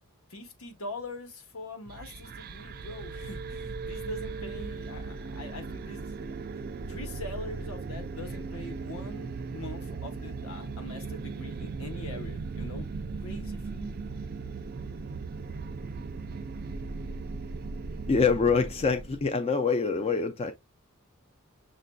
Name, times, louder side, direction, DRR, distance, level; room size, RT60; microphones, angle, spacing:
voice 1, 0.3-6.3 6.9-12.9 13.2-13.9, left 2 dB, 70° left, 1.2 m, -43 dB
sound 1, 1.9-19.3, right 4 dB, 45° right, 0.3 m, -38 dB
voice 2, 18.1-20.5, left 5 dB, 30° left, 0.4 m, -25 dB
6.5 x 2.6 x 2.2 m
head